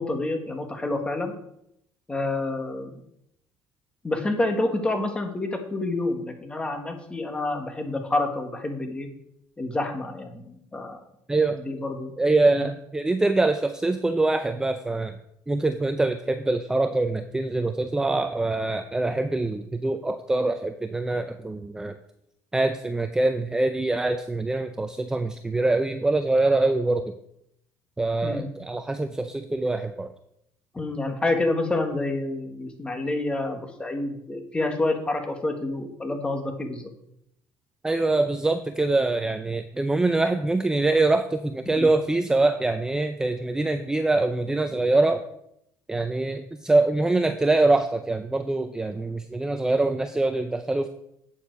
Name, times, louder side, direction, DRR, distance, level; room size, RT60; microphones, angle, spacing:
voice 1, 0.0-1.3 2.1-3.0 4.0-9.1 9.6-11.0 11.5-12.1 12.5-12.7 28.2-28.5 30.7-36.8 41.8-41.9, left 2 dB, 15° left, 4 dB, 1.6 m, -28 dB
voice 2, 11.3-11.6 12.2-15.2 15.5-22.0 22.5-27.0 28.0-30.1 37.8-45.2 45.9-50.9, right 2 dB, 10° right, 9 dB, 0.4 m, -24 dB
8.8 x 7.1 x 4.7 m, 0.77 s
cardioid pair, 115°, 7 cm